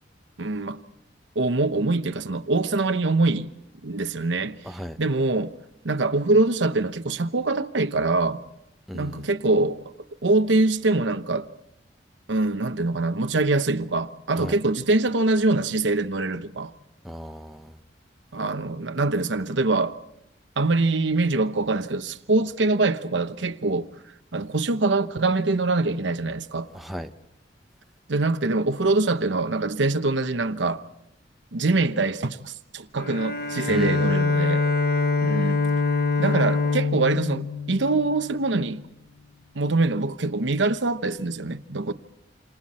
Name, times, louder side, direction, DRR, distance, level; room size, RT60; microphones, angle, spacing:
voice 1, 0.4-0.8 1.3-3.5 3.8-4.6 5.0-5.5 5.8-8.4 8.9-9.8 10.2-11.5 12.3-16.7 18.3-20.0 20.6-23.9 24.3-26.7 28.1-30.8 31.5-34.7 35.2-35.6 36.2-38.8 39.5-41.9, right 2 dB, 75° right, 0.9 m, -24 dB
voice 2, 4.6-5.0 8.9-9.3 14.4-14.5 17.0-17.8 26.7-27.1 33.7-34.1, equal, ahead, 0.9 m, -35 dB
Bowed string instrument, 33.0-38.5, left 4 dB, 55° left, 1.1 m, -24 dB
28.5 x 27.5 x 4.3 m
head